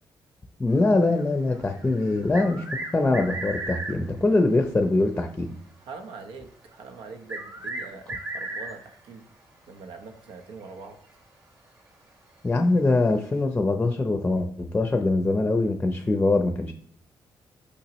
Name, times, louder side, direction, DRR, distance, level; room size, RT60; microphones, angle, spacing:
voice 1, 0.6-2.7 2.9-5.5 12.4-16.7, left 2 dB, 15° left, 5 dB, 0.6 m, -23 dB
sound 1, 0.8-4.1 6.5-6.6 7.3-9.0 10.6-10.7 11.1-11.2 12.9-13.0, right 2 dB, 40° right, 2.6 m, -35 dB
voice 2, 5.8-9.2 9.7-11.0, right 4 dB, 85° right, 6 dB, 0.9 m, -43 dB
6.2 x 5.8 x 3.0 m, 0.65 s
cardioid pair, 130°, 9 cm